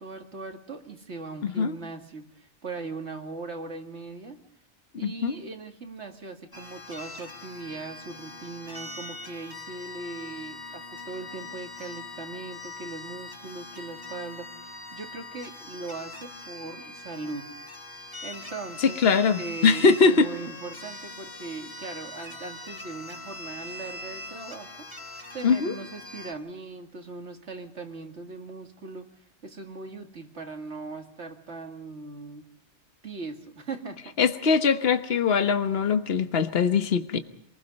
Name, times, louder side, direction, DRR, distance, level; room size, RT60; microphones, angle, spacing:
voice 1, 0.0-4.4 5.0-17.5 18.0-19.0 19.3-29.1 29.4-32.5 33.0-34.2, right 3 dB, 70° right, 5 dB, 2.5 m, -39 dB
voice 2, 5.0-5.4 18.8-20.3 25.4-25.7 34.2-37.2, left 5 dB, 55° left, 8 dB, 1.4 m, -22 dB
sound 1, 6.5-26.3, left 2 dB, 20° left, 2.1 m, -42 dB
26.5 x 20.5 x 5.3 m, 0.68 s
omnidirectional pair, 1.2 m